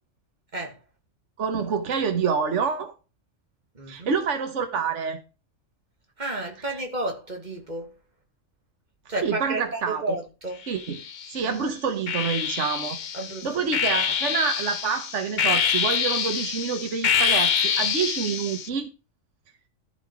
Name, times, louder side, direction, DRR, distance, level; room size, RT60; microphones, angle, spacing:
voice 1, 1.4-2.9 3.9-5.2 9.2-10.0 10.7-11.0 11.3-13.0 13.4-18.9, right 6 dB, 70° right, 1.5 m, -27 dB
voice 2, 3.7-4.2 6.2-8.0 9.1-10.6 11.4-11.6 13.1-13.5, right 2 dB, 35° right, 2.6 m, -32 dB
sound 1, 10.7-11.4 12.1-18.7, left 7 dB, 45° left, 0.7 m, -26 dB
14.0 x 5.7 x 4.9 m
omnidirectional pair, 1.3 m